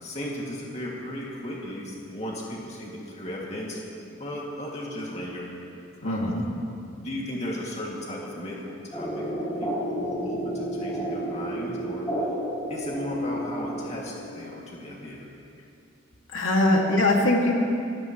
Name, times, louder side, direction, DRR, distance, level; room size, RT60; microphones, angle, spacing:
voice 1, 0.0-3.8 4.2-5.5 6.0-6.3 7.0-12.1 12.7-15.2, left 1 dB, 35° left, -4 dB, 2.4 m, -36 dB
voice 2, 6.0-6.4 16.3-17.5, left 1 dB, 85° left, -1 dB, 2.2 m, -22 dB
sound 1, 8.9-14.4, right 1 dB, 10° left, 4.0 m, -31 dB
26.0 x 15.5 x 3.1 m, 2.6 s
head